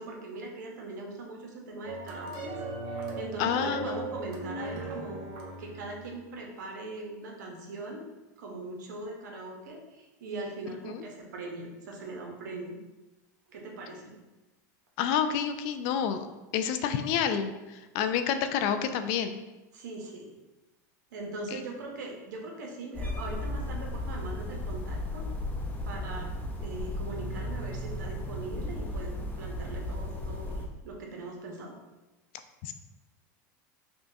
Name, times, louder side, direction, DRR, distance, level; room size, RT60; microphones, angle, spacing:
voice 1, 0.0-2.6 2.9-8.1 8.4-12.8 13.5-14.1 19.7-20.3 21.1-25.3 25.8-26.3 26.6-31.7, right 2 dB, 85° right, 0 dB, 0.8 m, -40 dB
sound 1, 1.8-6.2, right 2 dB, 50° right, 0.9 m, -38 dB
voice 2, 3.4-4.1 10.9-11.0 15.0-16.3 16.5-19.4 21.5-21.6 32.6-32.7, left 8 dB, 60° left, 9 dB, 0.4 m, -29 dB
sound 2, 22.9-30.7, left 1 dB, 15° left, 0.7 m, -35 dB
5.2 x 2.2 x 2.7 m, 1.1 s
supercardioid pair, 110°, 9 cm